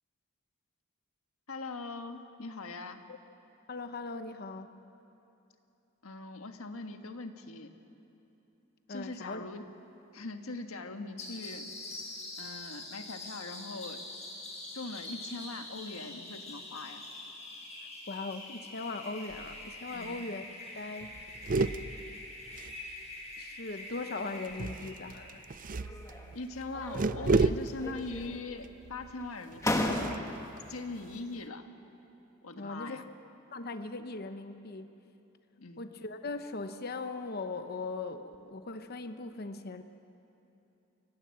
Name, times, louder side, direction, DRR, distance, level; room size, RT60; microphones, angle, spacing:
voice 1, 1.5-3.0 6.0-7.7 8.9-9.7 10.1-11.7 12.4-14.0 14.7-17.1 19.9-20.2 26.3-30.2 30.7-31.6 32.4-33.0 35.6-35.9, left 3 dB, 85° left, 6 dB, 1.5 m, -41 dB
voice 2, 3.7-4.8 8.9-9.5 18.1-20.4 20.8-21.1 23.4-25.4 32.6-33.0 33.5-35.0 35.8-39.8, left 3 dB, 50° left, 9 dB, 0.9 m, -39 dB
sound 1, 11.2-26.4, left 2 dB, 35° left, 6.8 m, -45 dB
sound 2, 19.3-19.7 20.1-20.2 20.4-20.7 21.0-23.3 24.4-31.4, right 3 dB, 40° right, 0.5 m, -34 dB
sound 3, 25.8-26.4 26.7-27.5 27.8-28.6 29.2-29.3 29.6-30.6, left 1 dB, 15° left, 1.4 m, -34 dB
28.5 x 17.0 x 7.7 m, 2.9 s
head